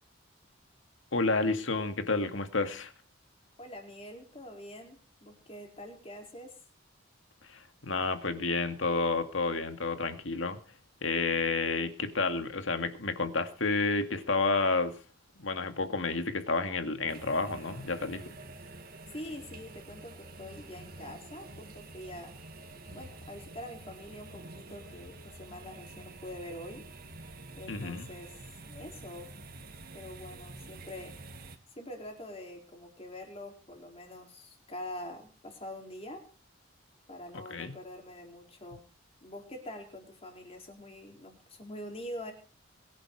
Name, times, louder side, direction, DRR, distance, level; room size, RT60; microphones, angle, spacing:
voice 1, 1.1-2.9 7.5-10.6 11.0-14.9 15.4-18.2 27.7-28.1 37.5-37.7, left 3 dB, 85° left, 8 dB, 2.1 m, -30 dB
voice 2, 3.6-6.5 19.1-22.3 22.9-26.8 27.5-28.4 28.7-29.3 29.9-31.2 31.8-36.2 37.1-38.9 39.2-42.3, left 1 dB, 30° left, 2 dB, 4.3 m, -45 dB
sound 1, 17.1-31.6, right 2 dB, 50° right, 1.8 m, -48 dB
22.0 x 10.5 x 4.8 m, 0.37 s
head